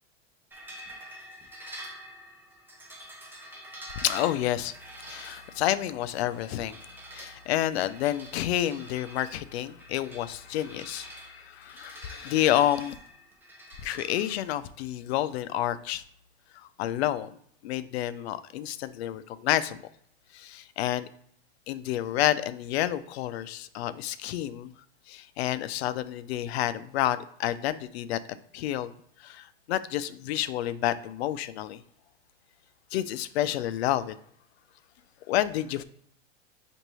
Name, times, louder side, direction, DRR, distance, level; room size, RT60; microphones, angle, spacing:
sound 1, 0.5-14.3, right 1 dB, 5° right, 0.6 m, -46 dB
voice 1, 4.0-4.8 5.0-6.8 7.1-13.0 13.8-16.0 16.5-17.4 17.6-19.8 20.3-21.1 21.7-24.7 25.1-28.2 28.5-28.9 29.2-31.8 32.9-34.2 35.3-35.8, left 12 dB, 70° left, 14 dB, 0.5 m, -29 dB
6.5 x 2.6 x 3.0 m, 0.67 s
supercardioid pair, 135°, 33 cm